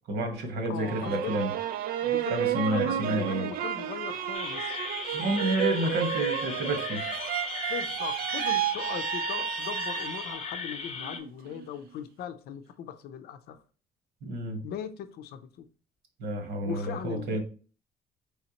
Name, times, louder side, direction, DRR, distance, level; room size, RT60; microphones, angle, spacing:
voice 1, 0.1-1.5 2.3-3.5 5.1-7.0 14.2-14.6 16.2-17.4, right 1 dB, 75° right, 1.4 m, -30 dB
voice 2, 0.6-1.3 2.0-4.8 7.7-13.6 14.6-15.6 16.6-17.4, left 9 dB, 70° left, 0.6 m, -39 dB
sound 1, 0.8-10.6 11.0-11.7, right 11 dB, 60° right, 0.5 m, -32 dB
sound 2, 4.3-11.2, left 5 dB, 40° left, 0.7 m, -37 dB
4.4 x 3.4 x 2.9 m
cardioid pair, 110°, 17 cm